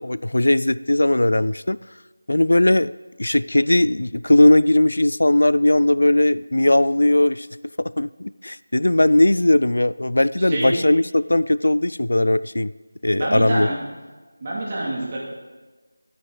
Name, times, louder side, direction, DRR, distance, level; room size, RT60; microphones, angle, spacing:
voice 1, 0.0-1.8 2.3-2.9 3.2-7.5 7.8-12.7 13.0-13.7, left 1 dB, 85° left, 18 dB, 0.3 m, -18 dB
voice 2, 10.4-10.8 13.1-13.8 14.4-15.2, right 1 dB, 25° right, -4 dB, 2.4 m, -26 dB
16.0 x 9.5 x 3.9 m, 1.3 s
figure-of-eight pair, 175°, 0 cm